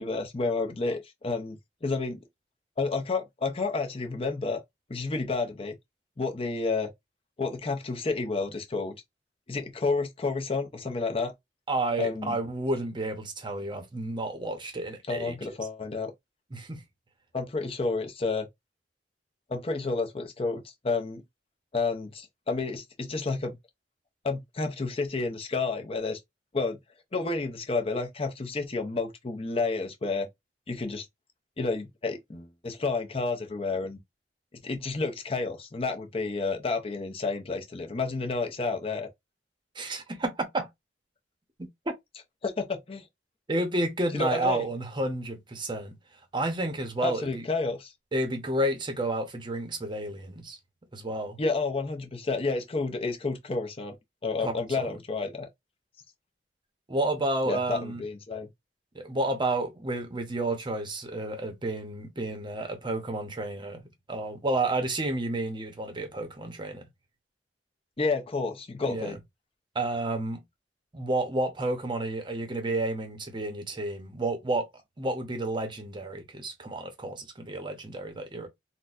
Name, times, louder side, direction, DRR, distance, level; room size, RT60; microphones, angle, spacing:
voice 1, 0.0-2.2 2.8-4.6 4.9-5.8 6.2-6.9 7.4-8.9 9.5-11.3 12.0-12.4 15.1-16.1 17.3-18.5 19.5-21.2 21.7-23.6 24.2-26.2 26.5-26.8 27.1-30.3 30.7-31.1 31.6-34.0 34.6-39.1 42.4-43.1 44.1-44.6 47.0-47.9 51.4-54.0 54.2-55.5 57.5-58.5 68.0-69.2, left 3 dB, 35° left, 0.6 m, -30 dB
voice 2, 11.7-15.4 16.5-16.8 39.7-40.7 41.9-42.0 43.5-45.9 46.3-47.4 48.1-50.6 50.9-51.4 54.4-55.0 56.9-58.0 58.9-66.9 68.9-69.2 69.7-70.4 70.9-74.7 75.0-78.5, right 2 dB, 25° right, 0.7 m, -31 dB
3.9 x 2.1 x 2.4 m
head